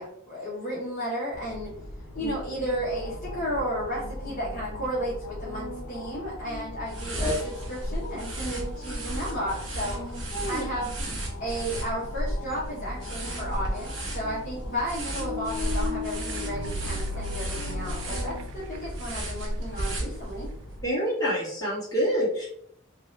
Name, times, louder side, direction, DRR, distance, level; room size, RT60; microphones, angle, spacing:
voice 1, 0.0-1.7 2.1-10.1 10.5-10.9 11.4-20.5, equal, 40° left, -8 dB, 0.9 m, -33 dB
sound 1, 1.3-20.8, left 1 dB, 80° left, 0.6 m, -38 dB
sound 2, 6.9-20.6, right 1 dB, 65° right, 1.1 m, -35 dB
voice 2, 10.3-10.6 20.8-22.5, equal, 20° left, -8 dB, 1.4 m, -27 dB
sound 3, 16.2-19.1 19.4-19.5, equal, 80° right, 0.3 m, -38 dB
2.8 x 2.4 x 3.1 m, 0.67 s
head